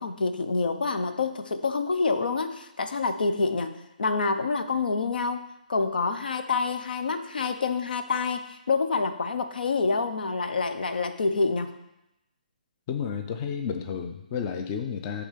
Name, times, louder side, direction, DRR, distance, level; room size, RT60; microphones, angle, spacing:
voice 1, 0.0-5.4 5.7-11.7, left 4 dB, 75° left, 8 dB, 0.7 m, -27 dB
voice 2, 12.9-15.2, left 7 dB, 20° left, 5 dB, 0.4 m, -31 dB
9.9 x 3.6 x 5.1 m, 0.90 s
hypercardioid pair, 160°, 5 cm